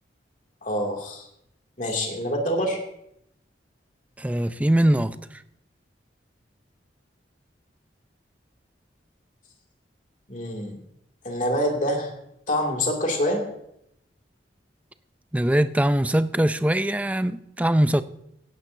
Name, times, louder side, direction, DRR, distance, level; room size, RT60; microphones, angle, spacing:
voice 1, 0.6-1.3 1.8-2.8 10.3-10.8 11.2-12.1 12.5-13.4, equal, 45° left, 2.5 m, -26 dB
voice 2, 4.2-5.4 15.3-18.0, right 1 dB, 10° right, 0.4 m, -22 dB
17.0 x 10.5 x 2.7 m
head